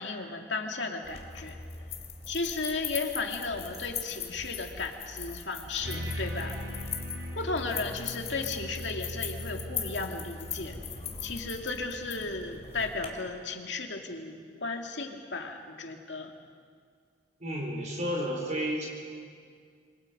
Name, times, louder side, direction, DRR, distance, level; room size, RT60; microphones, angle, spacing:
voice 1, 0.0-1.6 2.3-6.9 7.4-10.8 11.2-16.3, left 3 dB, 80° left, 3 dB, 2.3 m, -35 dB
sound 1, 1.0-13.1, left 7 dB, 40° left, 2.9 m, -40 dB
sound 2, 5.8-11.5, equal, 70° right, 4.5 m, -39 dB
voice 2, 17.4-18.8, equal, 45° right, -1 dB, 4.5 m, -31 dB
27.5 x 25.0 x 5.4 m, 2.1 s
head